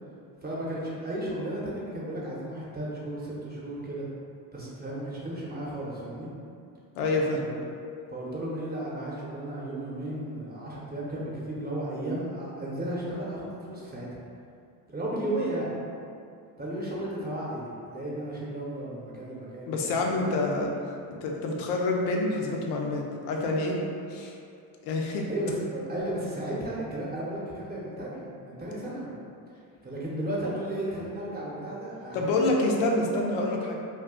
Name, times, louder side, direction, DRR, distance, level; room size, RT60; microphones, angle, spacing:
voice 1, 0.4-4.1 4.5-6.3 7.4-7.5 8.1-14.1 14.9-15.7 16.6-20.3 25.3-29.1 29.8-32.7, right 1 dB, 20° right, -6 dB, 0.8 m, -34 dB
voice 2, 7.0-7.4 19.7-20.7 21.2-23.8 24.1-24.3 24.8-25.3 32.1-33.7, left 2 dB, 70° left, 0 dB, 0.6 m, -27 dB
2.3 x 2.2 x 3.6 m, 2.5 s
supercardioid pair, 85°, 44 cm